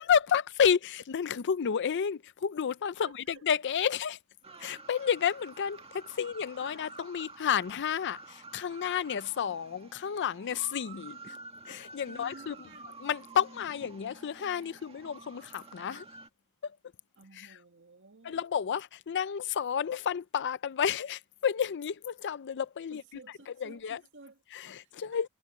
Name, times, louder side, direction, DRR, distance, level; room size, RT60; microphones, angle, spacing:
voice 1, 0.0-4.2 4.6-11.4 11.7-12.5 13.0-16.1 16.6-16.8 18.2-23.0 23.6-24.0 24.5-25.3, left 8 dB, 55° left, 0.5 m, -31 dB
voice 2, 3.0-3.4 6.2-6.3 6.6-6.9 9.4-9.5 12.1-12.9 17.2-18.4 22.9-24.4 24.8-25.3, right 3 dB, 60° right, 2.1 m, -54 dB
sound 1, 4.4-16.3, right 3 dB, 25° right, 1.8 m, -50 dB
head